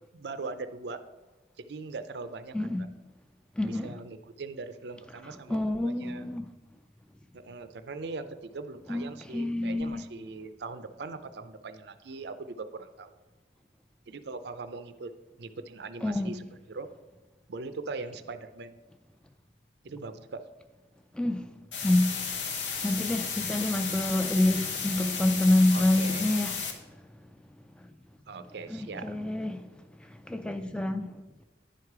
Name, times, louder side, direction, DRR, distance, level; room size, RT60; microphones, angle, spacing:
voice 1, 0.1-1.0 1.6-2.7 3.6-6.2 7.3-13.1 14.1-15.1 15.4-16.4 16.7-16.9 17.5-18.8 19.8-20.4 25.7-26.2 28.3-29.1, right 3 dB, 60° right, 0.5 m, -40 dB
voice 2, 2.5-2.9 3.6-4.0 5.2-6.5 8.9-10.0 16.0-16.4 21.1-21.5 21.8-22.5 22.8-27.0 27.8-27.9 28.7-29.7 30.0-31.1, left 1 dB, 5° left, 0.3 m, -28 dB
sound 1, 21.7-26.7, left 6 dB, 80° left, 1.0 m, -33 dB
10.0 x 4.8 x 4.7 m
head